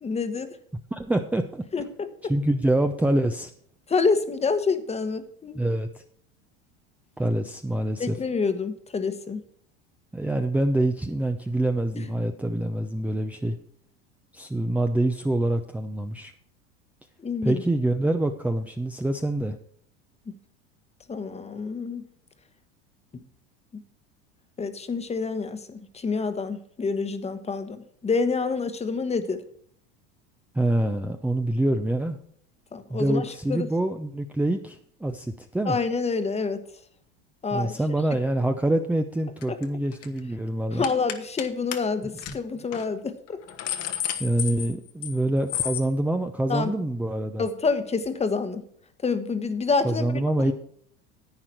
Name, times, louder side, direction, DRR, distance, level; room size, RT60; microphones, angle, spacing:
voice 1, 0.0-0.6 1.7-2.3 3.9-5.7 8.0-9.4 12.0-12.1 17.2-17.6 21.1-22.0 23.1-23.2 24.6-29.4 32.7-33.7 35.6-36.6 37.4-37.7 39.5-39.6 40.7-43.4 46.5-46.7 47.4-48.6 49.0-50.5, left 4 dB, 20° left, 11 dB, 1.1 m, -27 dB
voice 2, 0.9-1.6 2.3-3.5 5.5-5.9 7.2-8.2 10.1-13.6 14.3-16.3 17.4-19.6 30.5-32.2 32.9-35.8 37.5-40.8 44.2-47.4 49.8-50.5, right 1 dB, 5° right, 5 dB, 0.6 m, -25 dB
sound 1, 39.4-39.6 39.9-40.2 40.8-41.5 41.7-41.8 42.2-42.3 42.7-42.9 43.3-45.2 45.5-45.9, left 11 dB, 50° left, 1.2 m, -31 dB
10.5 x 8.8 x 4.5 m, 0.63 s
hypercardioid pair, 95°, 31 cm